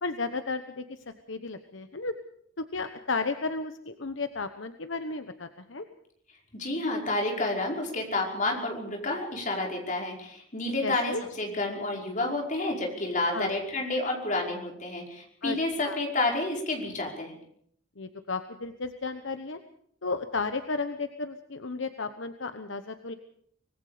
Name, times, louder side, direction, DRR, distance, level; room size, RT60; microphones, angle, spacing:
voice 1, 0.0-2.1 2.6-5.8 10.8-11.2 13.3-13.5 15.4-16.0 18.0-19.6 20.0-23.1, left 3 dB, 65° left, 8 dB, 1.1 m, -33 dB
voice 2, 6.5-17.3, left 2 dB, 40° left, 1 dB, 5.3 m, -30 dB
25.5 x 20.0 x 5.1 m, 0.65 s
head